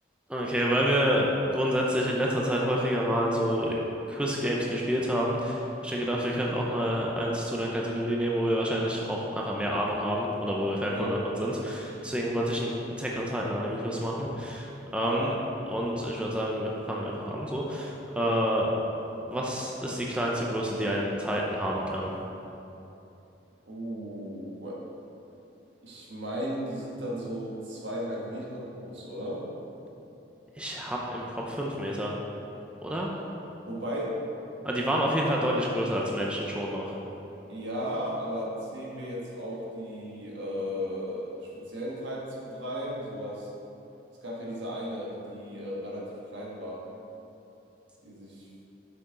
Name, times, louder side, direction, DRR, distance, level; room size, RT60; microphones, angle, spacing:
voice 1, 0.3-3.8 4.1-15.3 15.7-18.7 19.3-22.1 30.6-32.1 32.8-33.1 34.6-36.9, equal, 5° right, -3 dB, 0.6 m, -28 dB
voice 2, 10.8-11.2 15.1-15.3 18.3-18.4 23.7-24.8 25.8-29.5 33.7-34.2 35.0-35.1 37.5-43.5 44.2-46.8 48.0-48.5, equal, 85° right, -4 dB, 1.5 m, -35 dB
7.0 x 6.8 x 3.8 m, 2.9 s
head